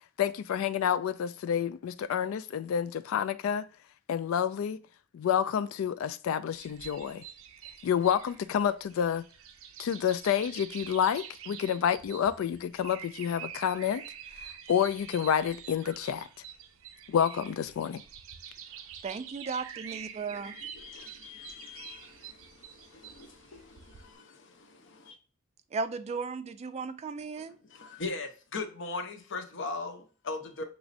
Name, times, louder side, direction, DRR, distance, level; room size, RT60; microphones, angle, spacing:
voice 1, 0.2-3.7 4.1-4.8 5.1-7.2 7.8-9.2 9.8-14.0 14.4-16.3 17.1-18.0, left 8 dB, 85° left, 0.3 m, -29 dB
sound 1, 6.5-24.1, right 8 dB, 80° right, 0.5 m, -47 dB
voice 2, 19.0-20.6 25.7-27.6, right 4 dB, 30° right, 0.3 m, -35 dB
voice 3, 20.5-25.2 27.3-30.6, left 3 dB, 65° left, 0.8 m, -40 dB
6.0 x 3.0 x 2.5 m
head